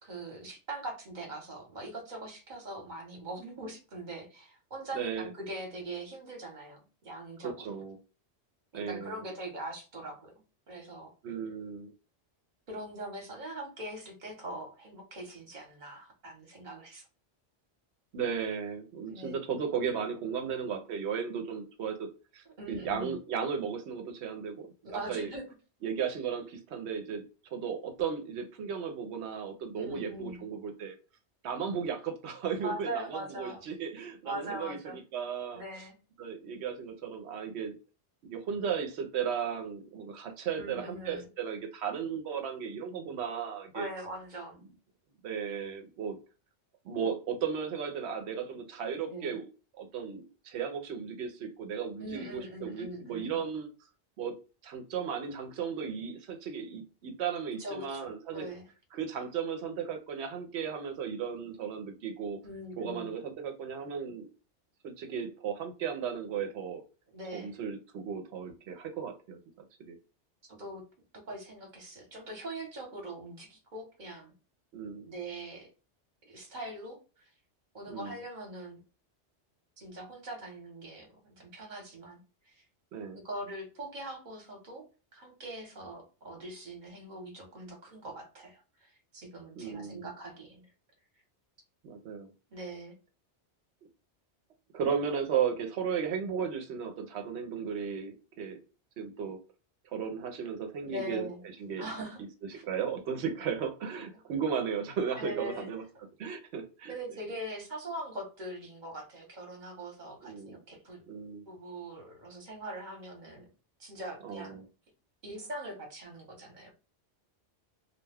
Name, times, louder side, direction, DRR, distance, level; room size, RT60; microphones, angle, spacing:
voice 1, 0.0-7.8 8.7-10.4 10.7-11.1 12.7-17.0 19.0-19.3 22.6-23.2 24.8-25.4 29.8-30.4 32.6-33.6 34.2-35.0 35.5-35.9 40.6-41.3 43.7-44.6 49.1-49.4 52.0-53.4 57.6-58.7 62.4-63.1 67.1-67.5 70.5-70.8 71.3-74.3 75.0-75.7 76.3-77.0 77.7-78.8 79.8-82.6 83.1-84.8 85.1-90.7 92.5-92.9 100.8-101.4 101.8-102.2 102.5-102.6 105.2-105.7 106.9-111.0 111.5-113.5 113.8-114.7 115.2-116.7, right 1 dB, 45° right, 1.0 m, -42 dB
voice 2, 4.9-5.3 7.4-8.0 8.7-9.2 11.2-11.9 18.1-25.3 25.8-27.2 27.5-30.9 31.4-35.9 36.2-37.8 38.2-43.9 45.2-46.2 46.8-49.5 49.8-53.7 54.2-54.4 54.6-58.5 58.9-62.4 62.8-64.3 64.8-66.8 67.3-69.4 69.8-70.0 74.7-75.1 77.9-78.2 82.9-83.2 89.6-90.1 91.8-92.3 94.7-98.6 99.0-99.4 99.9-101.3 101.6-101.9 102.5-105.8 106.2-106.9 110.2-110.6 111.1-111.5 114.2-114.6, right 7 dB, 75° right, 0.9 m, -35 dB
2.3 x 2.2 x 3.3 m
omnidirectional pair, 1.2 m